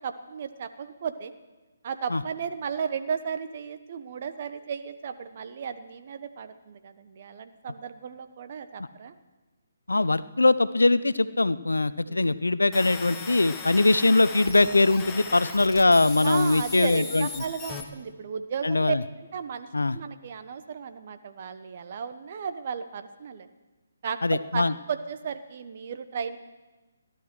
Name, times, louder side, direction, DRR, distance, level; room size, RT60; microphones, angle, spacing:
voice 1, 0.0-1.3 1.8-9.1 12.1-12.4 16.2-23.5 24.0-26.4, right 6 dB, 45° right, 9 dB, 1.1 m, -34 dB
voice 2, 9.9-17.3 18.6-19.0 19.7-20.0 24.2-24.7, left 2 dB, 85° left, 15 dB, 0.7 m, -22 dB
sound 1, 12.7-17.8, left 5 dB, 15° left, 1.5 m, -38 dB
16.5 x 11.5 x 6.2 m, 1.2 s
figure-of-eight pair, 145°, 0 cm